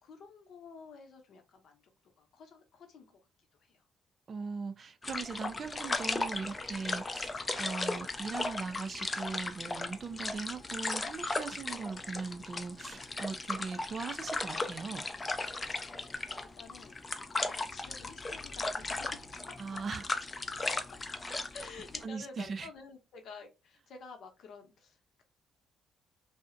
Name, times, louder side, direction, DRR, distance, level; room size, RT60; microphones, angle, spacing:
voice 1, 0.0-3.2 3.5-3.9 15.7-19.4 20.6-21.0 21.5-25.2, left 4 dB, 70° left, 0.7 m, -52 dB
voice 2, 4.3-15.1 19.6-20.0 21.3-21.4 22.0-22.7, right 5 dB, 45° right, 0.4 m, -40 dB
sound 1, 5.0-22.0, left 3 dB, 25° left, 0.4 m, -37 dB
2.6 x 2.1 x 2.4 m
cardioid pair, 90°, 0 cm